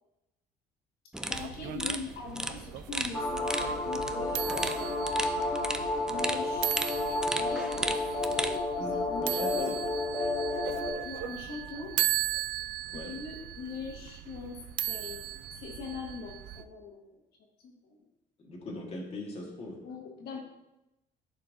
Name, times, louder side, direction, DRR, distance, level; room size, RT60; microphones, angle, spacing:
sound 1, 1.1-8.6, right 1 dB, 5° right, 0.4 m, -36 dB
voice 1, 1.3-5.2 6.1-6.9 7.3-8.0 8.3-8.6 8.9-9.4 11.0-11.9 12.9-14.6 14.9-17.2 17.6-18.0 19.8-20.4, left 4 dB, 70° left, -2 dB, 1.7 m, -42 dB
sound 2, 1.3-16.6, right 13 dB, 85° right, 0.4 m, -37 dB
sound 3, 3.1-10.9, left 2 dB, 20° left, 2.0 m, -31 dB
voice 2, 9.2-9.7 12.9-13.1 18.4-19.8, left 2 dB, 35° left, -2 dB, 1.6 m, -39 dB
11.0 x 4.5 x 2.6 m, 0.93 s
cardioid pair, 110°, 17 cm